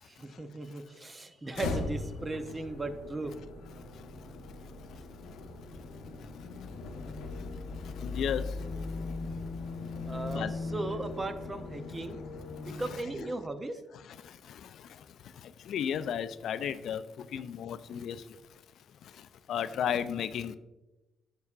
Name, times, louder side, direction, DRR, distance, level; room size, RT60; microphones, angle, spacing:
voice 1, 0.0-3.3 10.1-12.2 12.6-13.8 17.4-17.5, right 2 dB, 25° right, 9 dB, 0.6 m, -37 dB
sound 1, 1.5-13.5, left 3 dB, 85° left, 0.7 m, -39 dB
voice 2, 8.0-8.4 10.3-10.5 15.7-17.0 17.3-18.2 19.5-20.6, left 8 dB, 70° left, 13 dB, 0.3 m, -32 dB
9.2 x 5.5 x 2.4 m, 1.0 s
cardioid pair, 90°, 0 cm